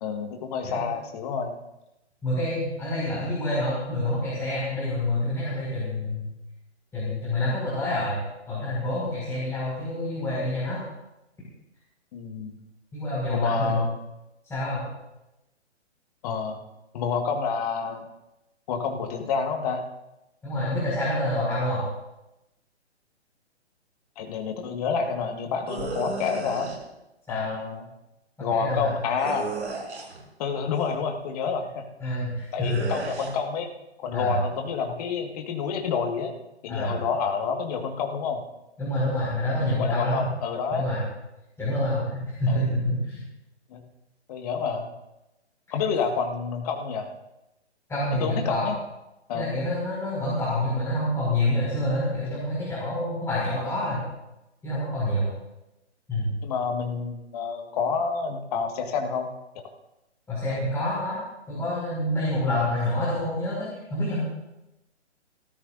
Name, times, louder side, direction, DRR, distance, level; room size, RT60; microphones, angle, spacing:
voice 1, 0.0-1.6 12.1-12.5 13.3-13.9 16.2-16.6 16.9-18.1 18.7-19.8 24.2-26.7 27.3-27.9 28.4-29.5 30.4-32.2 32.5-33.7 34.0-36.3 36.6-38.4 39.7-40.9 42.5-42.7 43.7-43.8 44.3-44.9 45.7-47.1 48.2-48.8 49.3-49.5 56.4-59.3 59.6-59.7 60.5-60.6, left 5 dB, 35° left, 3 dB, 1.8 m, -28 dB
voice 2, 2.2-6.3 6.9-8.2 8.5-10.8 12.9-13.8 14.4-14.9 20.4-21.8 27.3-27.6 28.4-28.9 32.0-32.8 34.1-34.4 36.7-37.0 38.8-40.3 40.7-41.0 41.6-43.2 45.7-45.8 47.9-48.7 49.3-54.0 54.6-55.3 56.1-56.3 60.3-61.2 61.5-64.2, left 1 dB, 10° left, -9 dB, 5.4 m, -27 dB
sound 1, 25.7-26.8 29.2-30.2 32.6-33.3, right 3 dB, 75° right, 6.1 m, -33 dB
29.5 x 14.0 x 2.6 m, 0.94 s
figure-of-eight pair, 140°, 34 cm